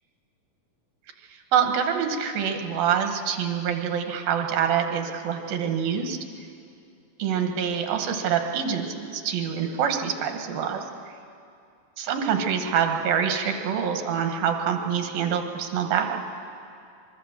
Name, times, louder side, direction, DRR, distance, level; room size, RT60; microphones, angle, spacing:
voice 1, 1.5-6.2 7.2-10.8 12.0-16.2, right 7 dB, 75° right, 5 dB, 3.4 m, -25 dB
24.0 x 23.0 x 7.4 m, 2.5 s
omnidirectional pair, 4.2 m